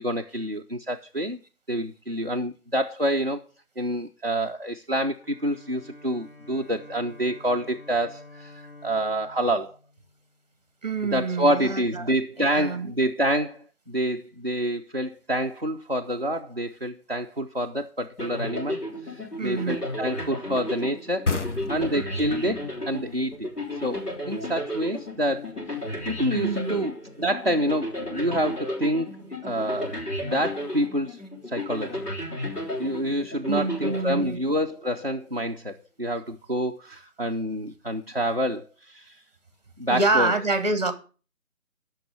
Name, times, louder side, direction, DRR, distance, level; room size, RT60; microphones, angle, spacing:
voice 1, 0.0-1.4 1.7-3.4 3.8-9.8 11.1-23.5 23.8-25.5 26.1-26.9 27.2-29.2 29.4-31.2 31.5-32.0 32.8-39.2 39.8-40.3, equal, 40° right, 0.4 m, -27 dB
Bowed string instrument, 5.1-10.6, left 2 dB, 35° left, 2.1 m, -49 dB
voice 2, 10.8-12.9 19.4-19.8 26.3-26.7 33.5-34.4 39.9-40.9, right 3 dB, 25° right, 1.1 m, -27 dB
sound 1, 18.2-34.7, left 1 dB, 80° left, 4.8 m, -33 dB
sound 2, 21.3-24.7, left 3 dB, 50° left, 1.0 m, -32 dB
9.8 x 6.2 x 6.5 m
figure-of-eight pair, 160°, 46 cm